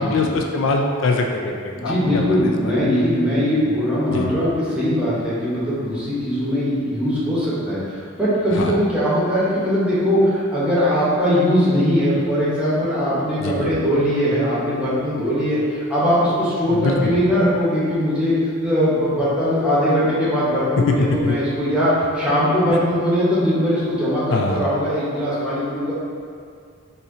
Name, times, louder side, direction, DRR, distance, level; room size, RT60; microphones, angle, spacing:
voice 1, 0.0-2.2 4.1-4.3 8.6-8.7 13.4-13.7 16.7-17.1 21.2-21.3 24.3-24.6, left 3 dB, 65° left, 2 dB, 0.3 m, -22 dB
voice 2, 1.7-18.4 18.6-25.9, equal, 5° right, -9 dB, 1.0 m, -20 dB
4.2 x 2.7 x 3.8 m, 2.3 s
head